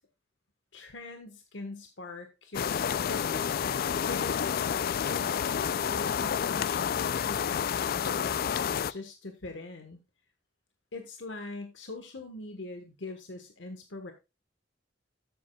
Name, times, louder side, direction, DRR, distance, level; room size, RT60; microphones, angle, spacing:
voice 1, 0.7-4.4 5.1-10.0 10.9-14.1, left 2 dB, 80° left, 5 dB, 1.2 m, -43 dB
sound 1, 2.5-8.9, left 8 dB, 55° left, 0.3 m, -29 dB
12.0 x 8.3 x 2.3 m, 0.26 s
head